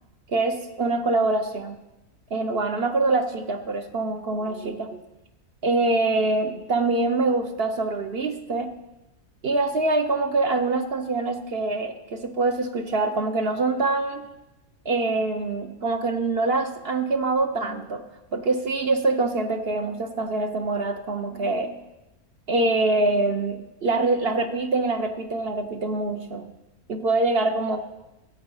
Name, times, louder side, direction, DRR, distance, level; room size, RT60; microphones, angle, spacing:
voice 1, 0.3-1.8 2.3-5.0 5.6-8.7 9.4-14.2 14.8-18.0 18.3-21.8 22.5-26.5 26.9-27.8, right 2 dB, 50° right, 7 dB, 0.9 m, -24 dB
13.5 x 8.2 x 5.5 m, 1.0 s
omnidirectional pair, 1.5 m